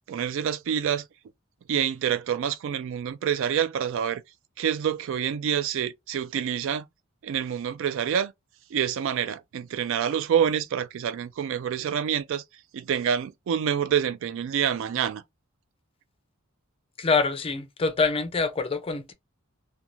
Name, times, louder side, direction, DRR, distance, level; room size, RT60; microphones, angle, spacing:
voice 1, 0.1-1.0 1.7-4.2 4.6-6.8 7.2-8.3 8.7-12.4 12.7-15.2, right 8 dB, 65° right, 0.3 m, -27 dB
voice 2, 17.0-19.1, left 4 dB, 25° left, 0.4 m, -25 dB
2.5 x 2.3 x 3.0 m
head